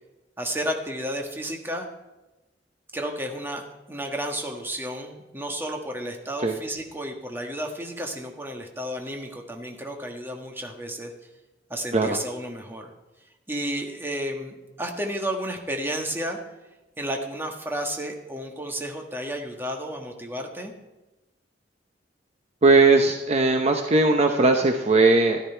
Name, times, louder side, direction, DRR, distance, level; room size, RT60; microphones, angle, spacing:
voice 1, 0.4-1.9 2.9-11.1 11.7-12.9 13.5-16.4 17.0-20.7, equal, 15° right, 2 dB, 1.6 m, -32 dB
voice 2, 22.6-25.4, right 3 dB, 40° right, 4 dB, 0.9 m, -19 dB
13.5 x 12.5 x 4.5 m, 1.0 s
head